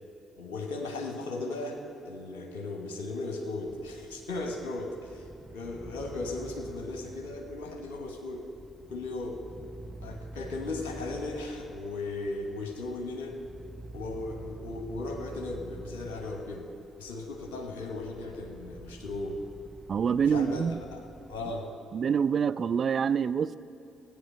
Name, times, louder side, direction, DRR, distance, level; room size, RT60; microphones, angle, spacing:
voice 1, 0.4-8.5 8.9-9.4 10.0-13.4 13.9-16.7 17.0-19.4 20.3-21.7, left 2 dB, 75° left, 3 dB, 1.1 m, -37 dB
sound 1, 3.7-21.6, right 1 dB, 10° right, 1.0 m, -47 dB
voice 2, 19.9-20.8 21.9-23.6, right 7 dB, 50° right, 14 dB, 0.3 m, -26 dB
17.0 x 8.8 x 5.5 m, 2.8 s
figure-of-eight pair, 45°, 0 cm